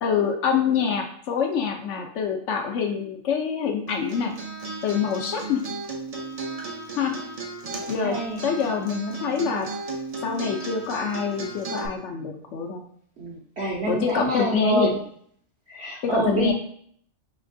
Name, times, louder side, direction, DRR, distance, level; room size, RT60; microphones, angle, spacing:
voice 1, 0.0-4.3 4.8-5.6 7.0-7.1 7.9-8.2 8.4-9.7 10.2-12.8 13.9-14.9 16.0-16.5, left 6 dB, 70° left, 4 dB, 0.9 m, -25 dB
Acoustic guitar, 3.9-11.9, right 3 dB, 40° right, 0.6 m, -35 dB
voice 2, 7.9-8.4 13.2-15.0 15.7-16.5, right 2 dB, 60° right, -5 dB, 1.1 m, -27 dB
5.0 x 3.1 x 2.6 m, 0.62 s
omnidirectional pair, 1.3 m